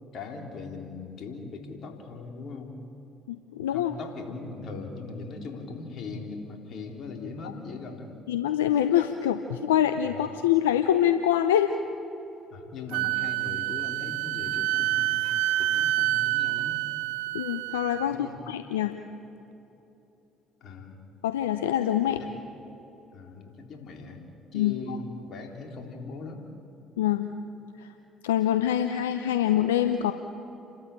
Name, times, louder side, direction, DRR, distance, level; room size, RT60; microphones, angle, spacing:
voice 1, 0.1-2.8 3.7-8.2 10.1-10.2 12.5-15.2 15.6-16.8 18.1-18.4 20.6-21.0 22.0-22.3 23.1-24.2 24.5-26.4, left 4 dB, 55° left, 3 dB, 3.7 m, -40 dB
voice 2, 3.3-3.9 8.3-11.7 17.3-18.9 21.2-22.2 24.5-25.0 27.0-27.3 27.8-27.9 28.2-30.1, left 11 dB, 85° left, 8 dB, 0.7 m, -25 dB
Wind instrument woodwind instrument, 12.9-18.1, right 16 dB, 75° right, 0.4 m, -27 dB
29.5 x 13.0 x 9.0 m, 3.0 s
hypercardioid pair, 55°, 0 cm